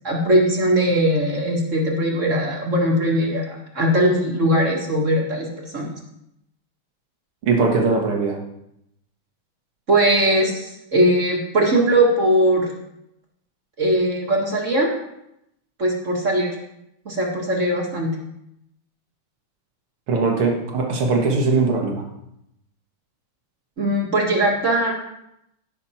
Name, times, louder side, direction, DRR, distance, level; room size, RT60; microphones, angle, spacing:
voice 1, 0.0-5.5 5.7-5.9 9.9-12.7 13.8-14.9 15.8-16.5 17.1-18.1 23.8-24.9, right 1 dB, 35° right, -1 dB, 2.0 m, -20 dB
voice 2, 7.4-8.4 20.1-22.0, right 4 dB, 75° right, 0 dB, 2.7 m, -20 dB
17.0 x 6.3 x 4.4 m, 0.81 s
omnidirectional pair, 2.4 m